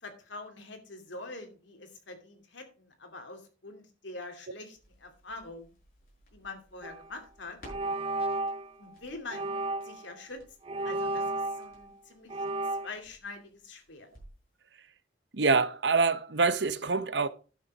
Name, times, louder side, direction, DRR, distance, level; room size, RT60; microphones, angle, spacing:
voice 1, 0.0-5.7 6.3-7.6 8.8-9.6 9.8-10.4 10.8-12.3 12.8-14.1, left 2 dB, 85° left, 2.7 m, -44 dB
Crackle, 4.7-14.5 14.8-14.9, equal, 50° left, 7.0 m, -58 dB
sound 1, 6.8-7.0 7.6-8.7 9.3-10.1 10.7-11.9 12.3-12.9, right 2 dB, 30° right, 0.5 m, -33 dB
voice 2, 15.3-17.3, right 4 dB, 70° right, 0.8 m, -25 dB
11.0 x 6.8 x 4.9 m
head